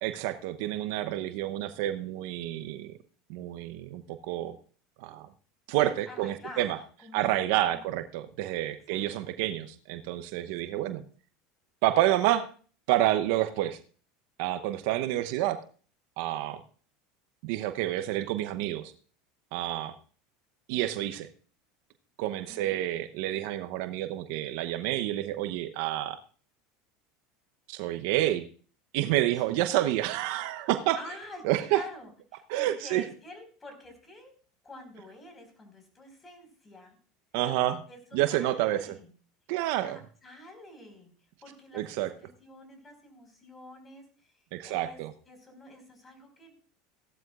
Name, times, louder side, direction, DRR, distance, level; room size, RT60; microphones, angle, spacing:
voice 1, 0.0-2.9 3.3-4.6 5.0-5.3 5.7-6.8 7.1-11.0 11.8-12.5 12.9-13.8 14.4-15.6 16.2-16.6 17.4-18.9 19.5-19.9 20.7-21.3 22.2-26.2 27.7-28.5 28.9-31.0 31.4-31.8 32.5-33.0 37.3-37.8 38.1-38.8 39.5-40.0 41.7-42.1 44.5-45.1, right 14 dB, 65° right, 10 dB, 0.8 m, -29 dB
voice 2, 1.0-1.3 6.1-7.3 7.7-7.9 8.9-9.1 10.6-10.9 22.5-22.8 29.5-29.7 30.9-34.3 34.6-37.0 37.9-39.1 39.7-41.1 41.4-41.8 42.2-45.0 45.3-46.5, left 1 dB, 25° left, 5 dB, 4.9 m, -48 dB
16.0 x 12.0 x 2.5 m, 0.41 s
hypercardioid pair, 85°, 0 cm